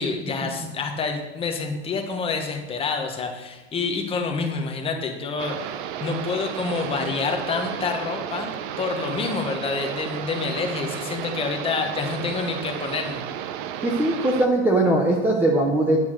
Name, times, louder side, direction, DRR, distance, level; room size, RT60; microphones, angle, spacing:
voice 1, 0.0-5.7 6.0-13.2, left 4 dB, 15° left, 3 dB, 1.2 m, -28 dB
sound 1, 5.4-14.5, right 10 dB, 45° right, 0.8 m, -33 dB
voice 2, 13.8-16.0, right 1 dB, 5° right, 0 dB, 0.9 m, -20 dB
10.5 x 7.0 x 6.6 m, 1.2 s
supercardioid pair, 155°, 35 cm